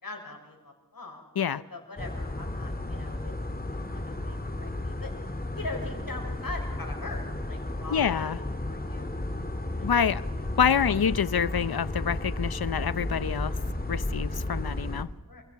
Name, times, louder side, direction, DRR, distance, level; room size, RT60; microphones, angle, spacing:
voice 1, 0.0-3.3 3.9-5.1 5.6-9.2 9.8-9.9 10.8-10.9 13.4-13.5 15.3-15.4, left 2 dB, 70° left, 5.9 m, -42 dB
sound 1, 2.0-15.0, left 1 dB, 25° left, 2.6 m, -33 dB
voice 2, 7.9-8.4 9.8-10.3 10.6-13.6 13.9-15.1, left 7 dB, 85° left, 0.8 m, -26 dB
29.0 x 26.0 x 5.9 m
wide cardioid pair, 80°, 36 cm